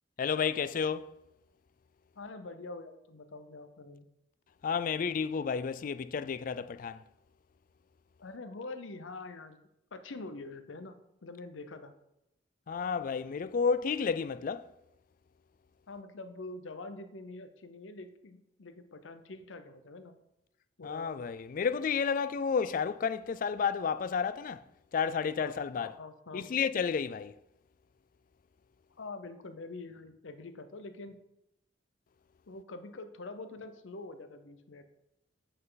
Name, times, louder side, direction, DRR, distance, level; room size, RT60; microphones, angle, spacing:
voice 1, 0.2-1.1 4.6-7.0 12.7-14.7 20.8-24.6 24.9-25.9 26.3-27.3, left 6 dB, 45° left, 0.3 m, -31 dB
voice 2, 2.2-4.1 8.2-10.9 11.2-11.9 15.9-20.1 20.8-21.2 25.4-26.5 29.0-31.2 32.5-34.8, left 3 dB, 85° left, 0.7 m, -45 dB
7.9 x 5.4 x 4.0 m
head